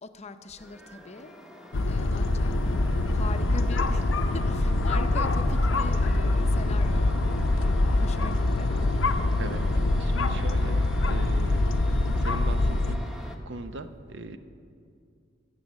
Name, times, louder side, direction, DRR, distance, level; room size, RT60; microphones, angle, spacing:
voice 1, 0.0-1.3 1.9-2.8 3.1-7.1 8.0-8.7, left 3 dB, 35° left, 9 dB, 0.6 m, -41 dB
sound 1, 0.6-13.4, left 1 dB, 5° right, 1.0 m, -44 dB
sound 2, 1.7-13.0, left 2 dB, 85° left, 0.6 m, -24 dB
Aircraft, 2.3-11.8, equal, 40° right, 1.4 m, -43 dB
voice 2, 9.4-11.6 12.2-13.1 13.5-14.4, right 2 dB, 65° right, 10 dB, 0.7 m, -39 dB
14.5 x 7.8 x 7.3 m, 2.3 s
head